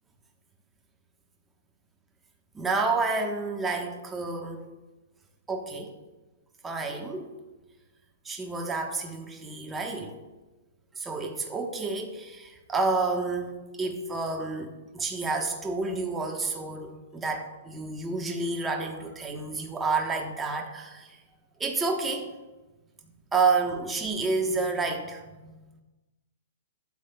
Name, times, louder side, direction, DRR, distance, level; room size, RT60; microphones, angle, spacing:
voice 1, 2.5-4.7 5.5-5.9 6.6-7.3 8.2-10.2 11.0-21.2 21.6-22.3 23.3-25.7, right 3 dB, 15° right, 3 dB, 1.1 m, -30 dB
13.0 x 7.2 x 2.3 m, 1.2 s
hypercardioid pair, 135°, 0 cm